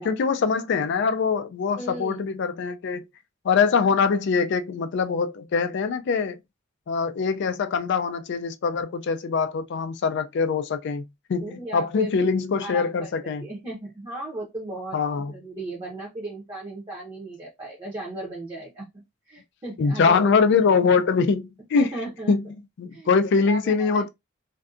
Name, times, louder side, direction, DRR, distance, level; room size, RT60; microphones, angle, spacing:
voice 1, 0.0-3.1 3.4-6.4 6.9-11.0 11.3-13.4 14.9-15.3 19.8-21.9 22.3-22.4 22.8-24.1, left 5 dB, 60° left, 0.3 m, -23 dB
voice 2, 1.7-2.2 11.4-12.3 12.6-15.0 15.3-20.3 21.7-22.4 22.9-23.1 23.4-24.1, right 2 dB, 20° right, 0.7 m, -36 dB
2.6 x 2.2 x 2.4 m
head